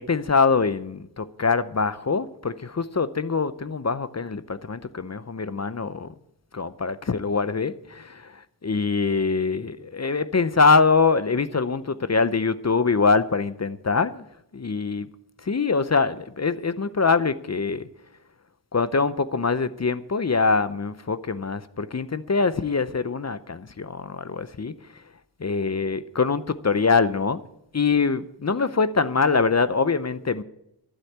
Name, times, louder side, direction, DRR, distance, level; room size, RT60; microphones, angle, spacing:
voice 1, 0.0-6.1 6.5-14.2 14.5-15.1 15.4-17.9 18.7-24.7 25.4-27.4 27.7-30.4, left 4 dB, 40° left, 0.7 m, -24 dB
12.0 x 8.1 x 9.4 m
wide cardioid pair, 85°, 42 cm